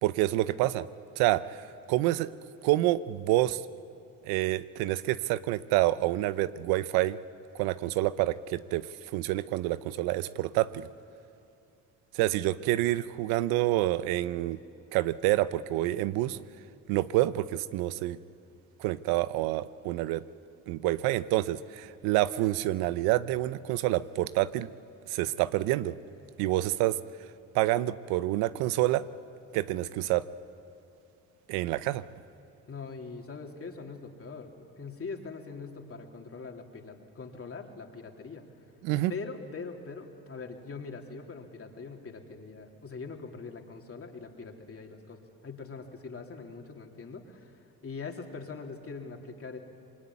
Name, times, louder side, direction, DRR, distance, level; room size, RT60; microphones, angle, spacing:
voice 1, 0.0-0.9 1.2-1.6 1.9-2.3 2.6-3.6 4.2-7.2 7.5-8.9 9.1-10.9 12.1-14.6 14.9-16.4 16.9-18.2 18.8-20.2 20.7-24.7 25.1-26.0 26.4-27.0 27.5-29.0 29.5-30.3 31.5-32.0 38.8-39.1, right 16 dB, 85° right, 15 dB, 0.8 m, -27 dB
voice 2, 32.7-38.4 39.1-47.5 47.8-49.6, left 4 dB, 40° left, 2 dB, 3.4 m, -42 dB
26.0 x 22.5 x 9.7 m, 2.5 s
supercardioid pair, 75°, 36 cm